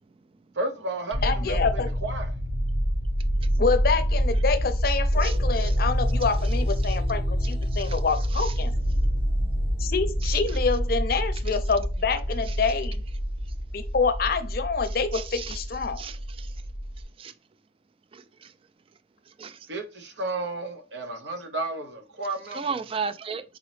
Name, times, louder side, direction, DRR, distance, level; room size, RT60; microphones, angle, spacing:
voice 1, 0.5-2.3 19.7-22.8, right 2 dB, 85° right, 0.8 m, -33 dB
sound 1, 1.1-17.0, equal, 65° right, 1.1 m, -27 dB
voice 2, 1.2-1.9 3.6-8.7 9.8-13.0 13.7-16.0, left 5 dB, 55° left, 0.5 m, -27 dB
sound 2, 5.1-13.0 13.4-13.6, left 1 dB, 10° right, 0.7 m, -42 dB
voice 3, 15.1-15.6 16.0-16.5 17.2-17.3 18.1-18.2 19.4-19.6 22.5-23.4, right 5 dB, 30° right, 0.3 m, -33 dB
3.9 x 3.8 x 3.2 m
head